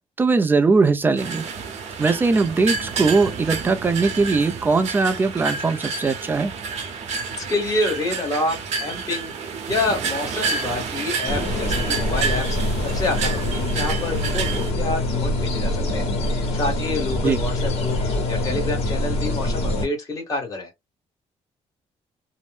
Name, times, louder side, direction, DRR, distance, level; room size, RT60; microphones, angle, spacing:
voice 1, 0.2-1.4 2.0-6.5 17.2-17.4, right 4 dB, 15° right, 0.4 m, -20 dB
sound 1, 1.2-14.7, right 5 dB, 75° right, 0.8 m, -29 dB
voice 2, 7.4-16.1 16.5-18.0 18.3-20.7, left 2 dB, 30° left, 1.4 m, -28 dB
sound 2, 11.3-19.8, left 1 dB, 65° left, 1.2 m, -24 dB
2.6 x 2.0 x 3.4 m
cardioid pair, 155°, 12 cm